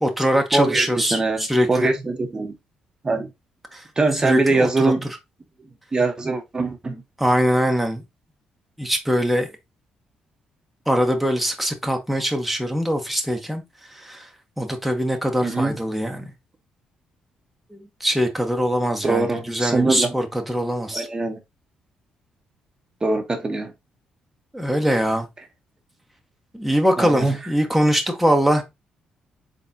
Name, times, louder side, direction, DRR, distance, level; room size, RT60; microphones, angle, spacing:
voice 1, 0.0-1.9 3.7-3.8 4.2-4.9 7.2-8.0 8.8-9.5 10.9-13.6 13.9-14.3 14.6-16.3 17.7-21.1 24.5-25.3 26.5-28.6, equal, ahead, 1.0 m, -22 dB
voice 2, 0.5-2.5 3.0-3.3 4.0-5.0 5.9-7.0 15.4-15.7 19.0-20.1 20.9-21.4 23.0-23.7 27.0-27.4, right 3 dB, 30° right, 0.9 m, -22 dB
3.9 x 3.5 x 2.7 m
supercardioid pair, 65°, 3 cm